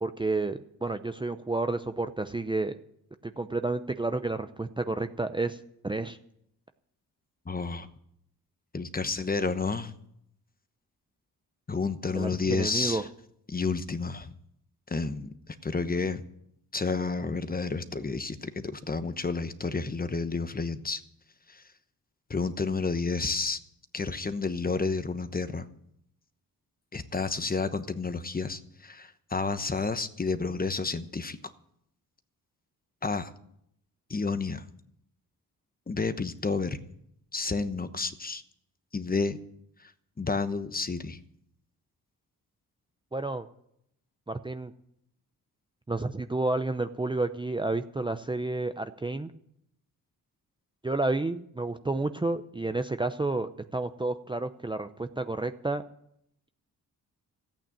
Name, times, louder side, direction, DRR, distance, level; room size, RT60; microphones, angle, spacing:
voice 1, 0.0-2.8 3.2-5.6 5.8-6.2 12.1-13.0 43.1-43.5 44.3-44.7 45.9-49.3 50.8-55.8, right 2 dB, 15° right, 9 dB, 0.7 m, -30 dB
voice 2, 7.5-7.9 8.7-9.9 11.7-13.1 13.5-14.3 14.9-16.2 16.7-21.0 21.5-21.6 22.3-23.6 23.9-25.7 26.9-31.4 33.0-33.3 34.1-34.6 35.9-36.8 37.3-38.4 38.9-39.4 39.8-39.9 40.2-41.2, left 4 dB, 25° left, 11 dB, 1.1 m, -30 dB
14.0 x 8.9 x 8.8 m, 0.75 s
cardioid pair, 80°, 37 cm